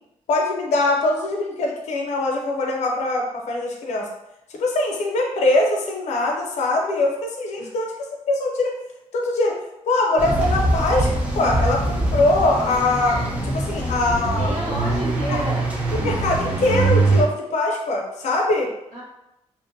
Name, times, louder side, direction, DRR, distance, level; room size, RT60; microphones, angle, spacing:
voice 1, 0.3-4.1 4.5-7.9 8.3-8.8 9.1-9.6 9.9-14.5 15.3-15.4 16.0-18.7, left 2 dB, 70° left, 0 dB, 0.5 m, -22 dB
sound 1, 10.2-17.2, right 2 dB, 10° right, 0.4 m, -23 dB
voice 2, 14.3-15.7 18.9-19.0, right 1 dB, 75° right, -8 dB, 1.2 m, -30 dB
2.5 x 2.1 x 2.5 m, 0.89 s
wide cardioid pair, 175°, 12 cm